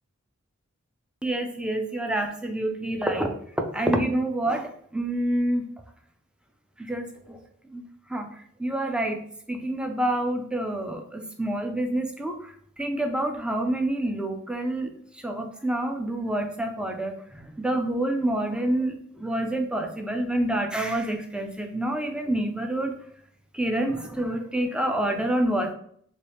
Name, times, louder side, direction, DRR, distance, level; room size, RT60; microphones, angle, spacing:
voice 1, 1.2-3.3 3.7-5.7 6.8-7.4 7.7-7.8 8.1-9.2 9.5-22.9 23.5-25.7, right 1 dB, 5° right, 4 dB, 0.3 m, -27 dB
2.8 x 2.7 x 3.3 m, 0.64 s
head